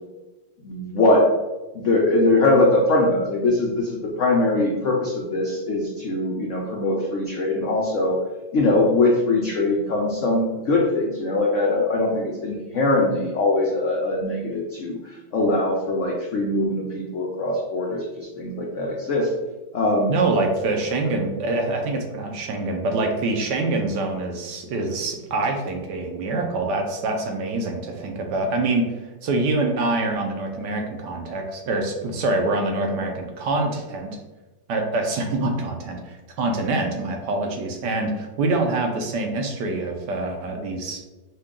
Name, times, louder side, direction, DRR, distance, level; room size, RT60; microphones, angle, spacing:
voice 1, 0.6-1.3 1.7-8.2 8.5-19.3 19.7-20.2, left 2 dB, 85° left, -2 dB, 0.6 m, -22 dB
voice 2, 20.1-28.9 29.2-34.1 34.7-41.0, right 2 dB, 70° right, 3 dB, 1.2 m, -25 dB
5.5 x 2.3 x 3.6 m, 1.1 s
omnidirectional pair, 2.1 m